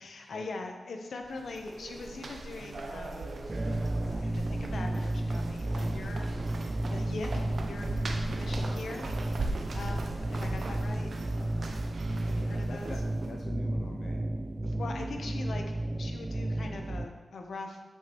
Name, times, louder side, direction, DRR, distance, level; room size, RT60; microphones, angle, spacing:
voice 1, 0.0-3.3 4.0-6.3 6.9-9.1 9.7-11.1 12.2-12.9 14.6-17.8, left 3 dB, 75° left, 3 dB, 0.9 m, -42 dB
sound 1, 1.2-13.4, right 2 dB, 60° right, 0.7 m, -39 dB
sound 2, 3.5-17.0, right 1 dB, 30° right, 0.3 m, -33 dB
voice 2, 11.3-11.8 12.5-14.2, left 3 dB, 55° left, 2 dB, 0.5 m, -45 dB
8.1 x 5.8 x 3.1 m, 1.3 s
wide cardioid pair, 95°, 0 cm